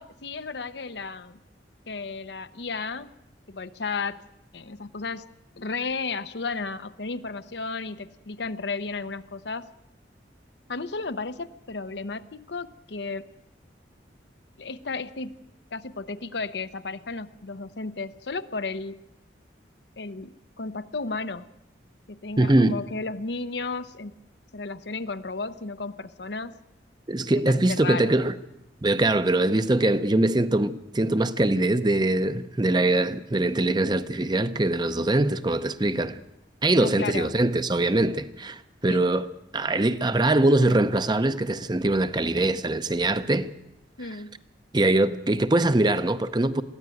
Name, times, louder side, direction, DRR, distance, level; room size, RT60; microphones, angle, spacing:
voice 1, 0.0-1.4 1.9-3.1 3.5-4.2 4.5-5.3 5.5-9.7 10.7-13.3 14.6-15.4 15.7-19.0 20.0-21.5 22.1-24.1 24.5-26.6 27.3-28.2 36.8-37.3 38.9-39.0 44.0-44.3, left 4 dB, 70° left, 0.8 m, -33 dB
voice 2, 22.4-22.8 27.1-28.3 28.8-36.2 36.6-39.3 39.5-43.5 44.7-46.6, right 2 dB, 25° right, 0.7 m, -22 dB
22.0 x 15.5 x 9.2 m
head